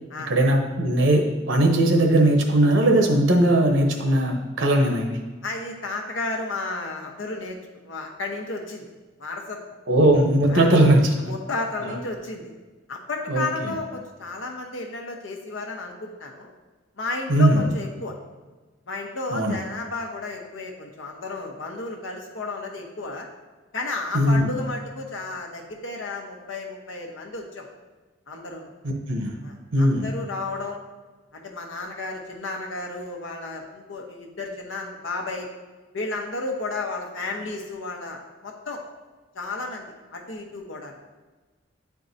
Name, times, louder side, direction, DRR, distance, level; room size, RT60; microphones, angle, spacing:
voice 1, 0.3-5.2 9.9-11.2 11.8-11.9 13.3-13.7 17.3-17.6 19.3-19.5 24.1-24.6 28.8-29.3 29.7-30.1, right 1 dB, 70° right, 3 dB, 0.8 m, -19 dB
voice 2, 5.4-7.6 7.8-8.8 9.2-9.6 10.5-10.7 11.2-12.6 12.9-16.5 17.0-18.1 18.9-23.3 23.7-27.7 28.3-28.7 29.4-30.8 31.3-35.5 35.9-38.8 39.3-39.9 40.1-41.0, left 3 dB, 85° left, 1 dB, 1.0 m, -33 dB
8.7 x 4.6 x 2.7 m, 1.3 s
head